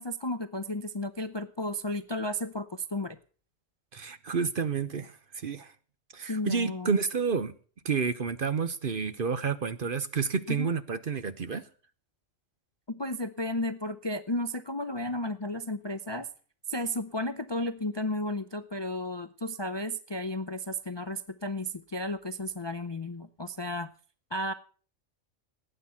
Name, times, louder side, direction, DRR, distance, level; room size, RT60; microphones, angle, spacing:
voice 1, 0.0-3.2 6.3-7.0 10.5-10.7 12.9-16.3 16.7-23.9 24.3-24.5, left 1 dB, 30° left, 0.5 m, -33 dB
voice 2, 3.9-5.7 6.1-7.5 7.8-11.6, right 5 dB, 45° right, 0.9 m, -30 dB
18.5 x 9.1 x 5.7 m
omnidirectional pair, 1.4 m